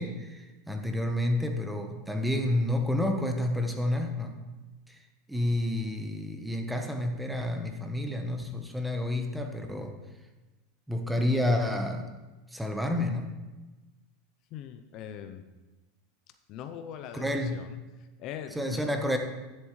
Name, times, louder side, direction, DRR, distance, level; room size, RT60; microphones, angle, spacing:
voice 1, 0.0-4.4 4.9-5.0 5.3-9.9 10.9-12.1 12.5-13.3 17.1-17.6 18.5-19.2, left 1 dB, 5° right, 4 dB, 1.1 m, -29 dB
voice 2, 14.5-15.5 16.5-17.3 17.5-18.9, left 9 dB, 50° left, 8 dB, 0.6 m, -41 dB
10.5 x 7.5 x 3.2 m, 1.2 s
hypercardioid pair, 110°, 0 cm